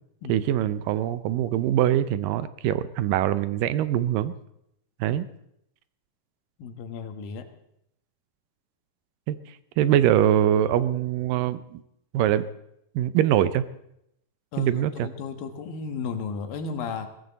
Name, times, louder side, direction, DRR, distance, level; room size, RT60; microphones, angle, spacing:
voice 1, 0.3-4.3 5.0-5.3 9.3-9.4 9.8-11.8 12.1-12.5 13.0-13.6 14.6-15.1, right 11 dB, 80° right, 14 dB, 2.4 m, -23 dB
voice 2, 6.6-7.5 14.5-17.1, left 5 dB, 80° left, 7 dB, 3.1 m, -34 dB
22.0 x 16.0 x 4.1 m, 0.77 s
omnidirectional pair, 4.0 m